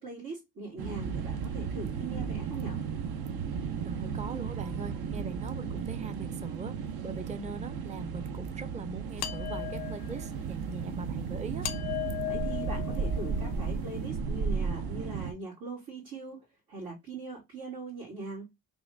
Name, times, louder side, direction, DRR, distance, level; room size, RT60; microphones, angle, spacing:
voice 1, 0.0-2.8 12.3-18.5, right 3 dB, 90° right, 2.2 m, -41 dB
sound 1, 0.8-15.3, right 6 dB, 70° right, 0.7 m, -34 dB
voice 2, 3.8-6.8 7.0-11.7, right 3 dB, 20° right, 0.6 m, -41 dB
sound 2, 9.2-10.3 11.6-13.5, left 14 dB, 80° left, 0.6 m, -37 dB
3.4 x 2.5 x 3.2 m
supercardioid pair, 45°, 38 cm